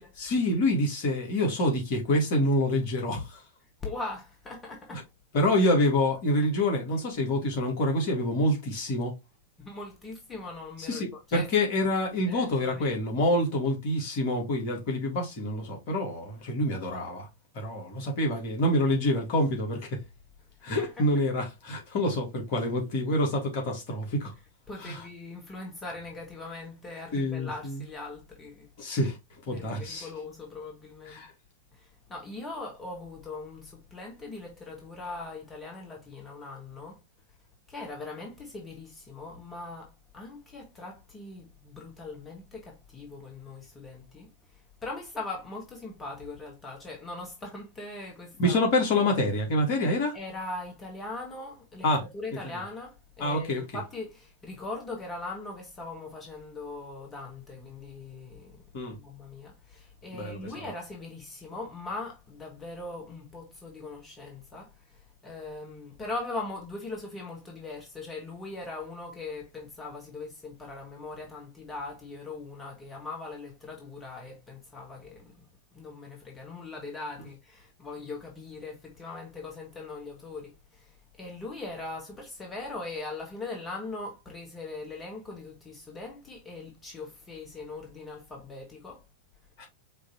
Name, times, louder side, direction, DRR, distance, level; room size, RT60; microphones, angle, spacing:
voice 1, 0.2-3.4 4.9-5.0 5.3-9.2 10.9-17.3 17.5-20.0 20.6-24.3 24.8-25.0 27.1-27.8 28.8-29.2 29.5-30.1 31.1-31.3 48.4-50.2 51.8-52.0 53.2-53.6 58.7-59.0 60.1-60.6 89.6-89.7, left 1 dB, 50° left, 1.9 m, -27 dB
voice 2, 3.8-5.1 5.6-5.7 9.6-11.7 12.3-13.0 20.7-20.9 24.7-28.7 29.5-31.2 31.7-37.0 37.7-48.6 50.1-58.6 58.9-89.0, left 3 dB, 20° left, 1.5 m, -40 dB
5.4 x 3.2 x 2.9 m
figure-of-eight pair, 90°, 0 cm